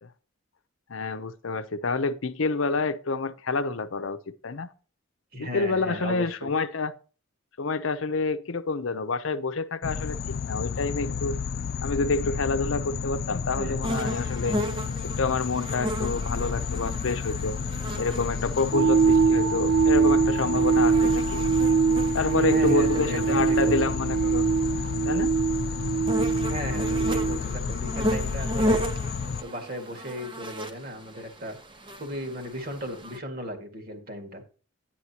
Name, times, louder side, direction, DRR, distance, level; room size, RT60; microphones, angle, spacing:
voice 1, 0.9-4.7 5.4-6.9 7.6-11.4 11.8-14.6 15.0-17.6 18.0-21.4 22.1-24.5 25.1-25.3, left 4 dB, 70° left, 0.7 m, -28 dB
voice 2, 5.3-6.5 11.1-11.2 13.5-13.9 22.4-23.9 26.4-28.8 29.4-31.6 32.0-34.4, equal, 45° right, 2.0 m, -36 dB
sound 1, 9.8-29.4, left 5 dB, 50° left, 0.3 m, -31 dB
sound 2, 13.8-33.2, equal, 25° right, 0.9 m, -35 dB
sound 3, 18.7-27.4, right 5 dB, 90° right, 0.4 m, -23 dB
10.5 x 9.7 x 2.9 m
head